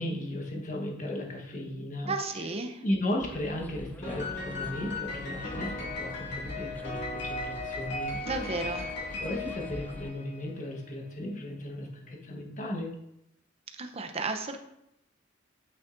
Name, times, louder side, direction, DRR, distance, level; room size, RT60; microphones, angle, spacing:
voice 1, 0.0-2.5 2.8-8.2 8.4-8.7 9.2-12.9, left 1 dB, 40° left, 0 dB, 1.2 m, -35 dB
voice 2, 2.1-2.8 8.2-8.9 13.8-14.6, right 3 dB, 30° right, 6 dB, 0.6 m, -33 dB
sound 1, 3.2-10.1, left 1 dB, 10° left, 0.3 m, -45 dB
Piano, 4.0-10.5, left 2 dB, 60° left, 2.3 m, -37 dB
8.6 x 6.2 x 2.6 m, 0.82 s
head